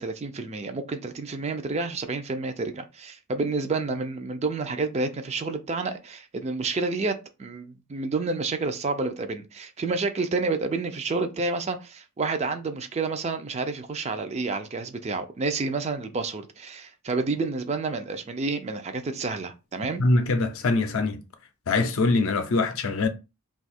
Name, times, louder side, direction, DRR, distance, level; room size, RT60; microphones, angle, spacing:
voice 1, 0.0-20.0, right 3 dB, 30° right, 0.4 m, -29 dB
voice 2, 20.0-21.2 21.7-23.1, left 3 dB, 60° left, 0.5 m, -23 dB
2.7 x 2.3 x 4.1 m
head